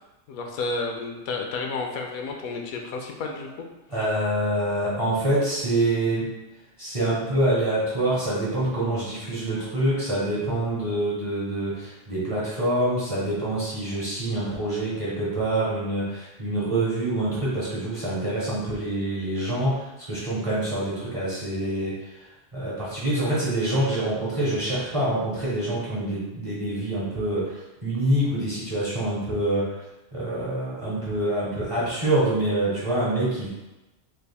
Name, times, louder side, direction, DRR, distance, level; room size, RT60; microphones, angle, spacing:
voice 1, 0.3-3.5, left 3 dB, 90° left, 2 dB, 1.0 m, -31 dB
voice 2, 3.9-6.3 6.8-29.8 30.1-33.5, right 1 dB, 30° right, -8 dB, 0.8 m, -26 dB
3.4 x 3.4 x 2.3 m, 1.0 s
omnidirectional pair, 1.4 m